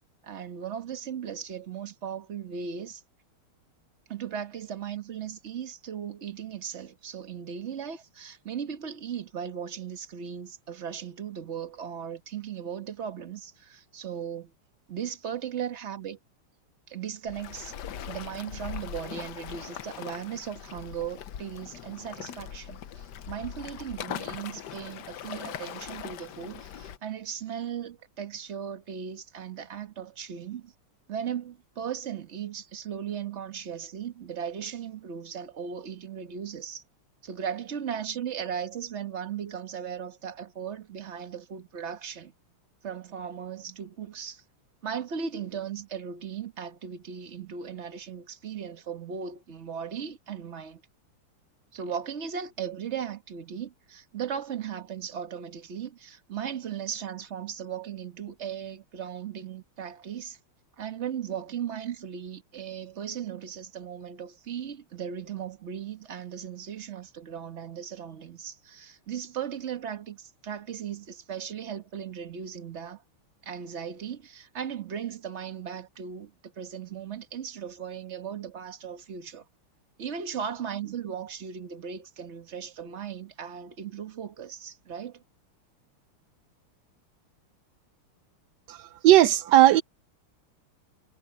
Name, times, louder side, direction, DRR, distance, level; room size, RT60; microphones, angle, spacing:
voice 1, 0.2-3.0 4.1-14.5 14.9-16.2 16.9-17.7 18.0-30.7 31.1-36.8 37.2-42.3 42.8-44.4 44.8-50.8 51.7-60.4 60.8-73.0 73.4-79.4 80.0-85.2, right 8 dB, 35° right, 1.3 m, -37 dB
Waves surf, 17.3-27.0, left 9 dB, 60° left, 1.3 m, -40 dB
voice 2, 88.7-89.8, right 14 dB, 80° right, 0.9 m, -18 dB
omnidirectional pair, 2.4 m